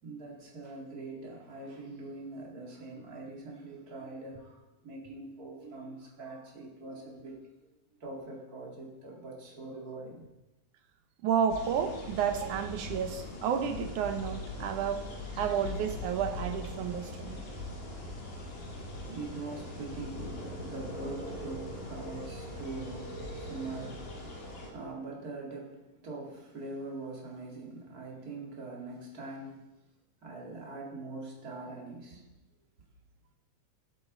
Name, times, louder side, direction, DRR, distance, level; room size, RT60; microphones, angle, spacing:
voice 1, 0.0-7.4 8.0-10.3 18.4-29.6 30.2-32.2, right 2 dB, 30° right, -2 dB, 2.5 m, -43 dB
voice 2, 11.2-15.0 15.4-17.4 18.9-19.0, right 8 dB, 80° right, 6 dB, 2.5 m, -31 dB
sound 1, 11.5-24.7, left 1 dB, 90° left, 4.0 m, -41 dB
18.0 x 8.2 x 4.0 m, 1.0 s
omnidirectional pair, 3.5 m